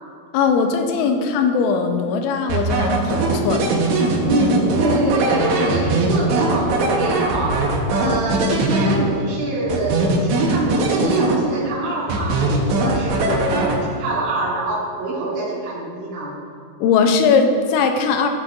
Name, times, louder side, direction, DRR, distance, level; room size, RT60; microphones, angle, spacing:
voice 1, 0.3-3.8 16.8-18.3, left 5 dB, 85° left, 5 dB, 3.1 m, -19 dB
sound 1, 2.5-9.3 9.7-11.7 12.1-14.1, right 2 dB, 75° right, 3.2 m, -20 dB
voice 2, 4.1-16.4, right 2 dB, 55° right, -7 dB, 1.9 m, -25 dB
15.5 x 8.1 x 2.5 m, 2.1 s
omnidirectional pair, 5.4 m